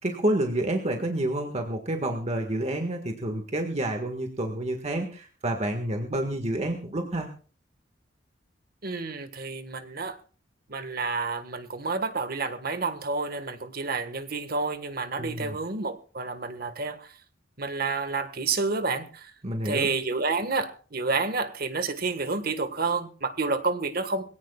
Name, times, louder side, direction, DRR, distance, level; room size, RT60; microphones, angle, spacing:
voice 1, 0.0-7.3 15.2-15.6 19.4-19.9, right 1 dB, 35° right, 1.7 m, -29 dB
voice 2, 8.8-10.2 10.7-17.1 17.6-19.3 19.6-24.2, right 4 dB, 55° right, 1.6 m, -29 dB
23.0 x 17.0 x 2.4 m
head